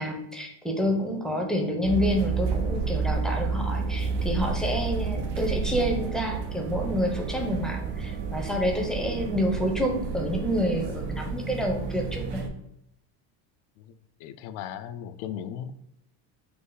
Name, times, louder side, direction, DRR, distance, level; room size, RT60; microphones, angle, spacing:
voice 1, 0.0-12.4, equal, ahead, 2 dB, 0.7 m, -28 dB
sound 1, 1.8-12.5, right 4 dB, 60° right, 0.8 m, -30 dB
voice 2, 14.2-15.7, left 9 dB, 65° left, 12 dB, 0.5 m, -37 dB
5.6 x 2.0 x 3.9 m, 0.81 s
supercardioid pair, 110°, 46 cm